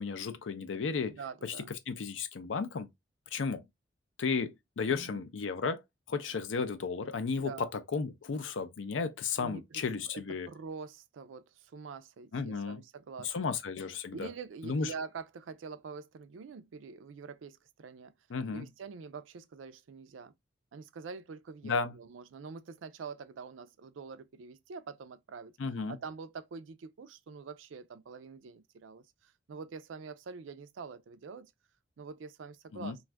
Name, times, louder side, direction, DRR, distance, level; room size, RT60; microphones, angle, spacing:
voice 1, 0.0-1.5 1.9-2.9 3.3-3.6 4.2-5.8 6.1-10.5 12.3-12.8 13.2-14.3 14.6-14.9 18.3-18.7 21.6-21.9 25.6-26.0 32.7-33.0, left 5 dB, 85° left, 0.5 m, -34 dB
voice 2, 1.1-1.7 4.8-5.2 7.4-7.6 9.4-13.5 14.1-18.1 18.5-20.3 20.7-25.5 25.9-31.5 32.0-33.0, right 5 dB, 85° right, 0.4 m, -45 dB
2.5 x 2.3 x 3.2 m
head